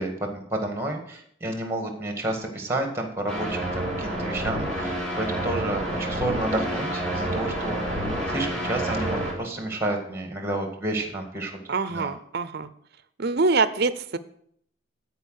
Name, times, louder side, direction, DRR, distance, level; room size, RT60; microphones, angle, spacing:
voice 1, 0.0-8.0 8.3-11.5 11.9-12.1, right 1 dB, 10° right, 4 dB, 1.8 m, -30 dB
sound 1, 3.3-9.3, right 1 dB, 5° left, 4.1 m, -28 dB
voice 2, 11.7-12.7 13.2-14.2, right 3 dB, 55° right, 14 dB, 0.6 m, -24 dB
13.0 x 5.0 x 6.4 m, 0.67 s
head